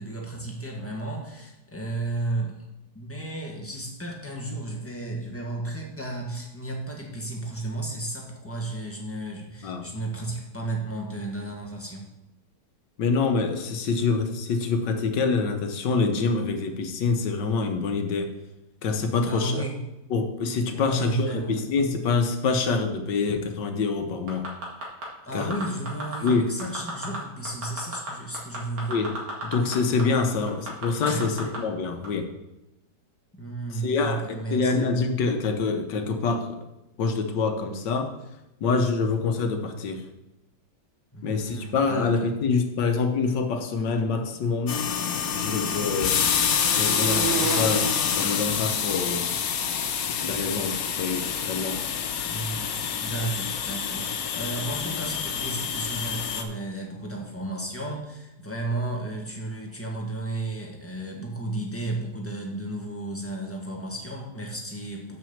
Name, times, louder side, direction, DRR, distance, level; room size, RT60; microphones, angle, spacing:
voice 1, 0.0-2.5 2.9-12.1 19.3-19.8 20.7-21.6 25.2-28.9 31.0-31.5 33.3-34.8 41.1-42.3 52.2-65.2, right 2 dB, 10° left, -1 dB, 1.4 m, -33 dB
voice 2, 13.0-18.3 18.8-19.6 20.1-24.4 25.3-25.5 26.2-26.4 28.9-29.1 29.4-32.3 33.8-36.6 37.0-38.1 38.6-40.0 41.2-44.8 45.3-46.2 46.7-49.3 50.2-51.8, left 4 dB, 90° left, 6 dB, 1.6 m, -26 dB
sound 1, 24.3-25.0 25.4-26.3 26.6-27.2 27.4-29.7 30.0-30.1 30.5-31.6 32.0-32.1, right 1 dB, 70° right, 2.6 m, -33 dB
sound 2, 44.6-49.2, right 5 dB, 90° right, 1.9 m, -34 dB
sound 3, 44.7-56.4, left 7 dB, 65° left, 1.2 m, -27 dB
6.1 x 6.1 x 7.1 m, 0.95 s
omnidirectional pair, 1.8 m